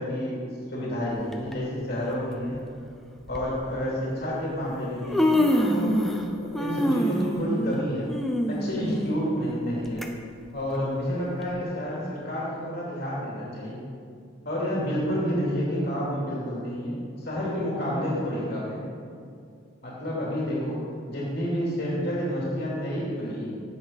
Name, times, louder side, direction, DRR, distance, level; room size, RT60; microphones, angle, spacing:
voice 1, 0.0-2.6 3.3-6.0 6.4-8.1 8.5-10.1 10.5-13.8 14.4-18.8 19.8-20.8 21.1-23.5, equal, 50° left, -6 dB, 3.0 m, -29 dB
Human voice, 1.3-1.5 2.6-2.7 3.3-3.5 4.5-4.6 4.9-6.3 6.5-10.1 10.5-10.6 11.4-11.5, equal, ahead, 0.6 m, -25 dB
16.0 x 7.6 x 4.1 m, 2.3 s
head